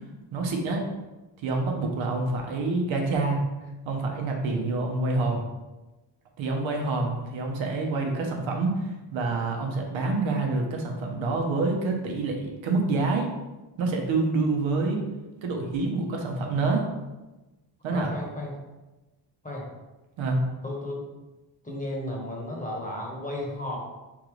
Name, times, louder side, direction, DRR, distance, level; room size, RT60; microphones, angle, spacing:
voice 1, 0.3-0.8 1.4-3.4 3.9-5.5 6.4-13.3 13.8-15.0 15.4-16.9 17.8-18.1 20.2-20.4, right 3 dB, 85° right, 1 dB, 1.0 m, -27 dB
voice 2, 17.9-18.5 19.4-19.6 20.6-21.1 21.6-23.8, left 1 dB, 15° left, -2 dB, 1.1 m, -34 dB
3.9 x 3.8 x 3.1 m, 1.1 s
cardioid pair, 115°, 46 cm